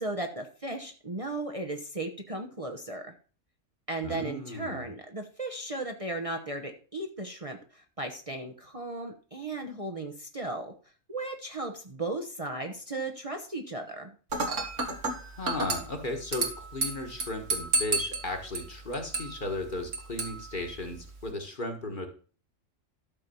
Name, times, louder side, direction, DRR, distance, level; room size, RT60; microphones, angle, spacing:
voice 1, 0.0-3.1 3.9-10.7 11.1-14.1, right 2 dB, 30° right, 4 dB, 1.0 m, -36 dB
voice 2, 4.0-4.9 15.2-22.1, left 2 dB, 40° left, 4 dB, 1.7 m, -35 dB
Dishes pots and pans / Glass, 14.3-21.3, right 3 dB, 75° right, 2.1 m, -33 dB
12.5 x 4.3 x 6.9 m, 0.39 s
omnidirectional pair, 1.3 m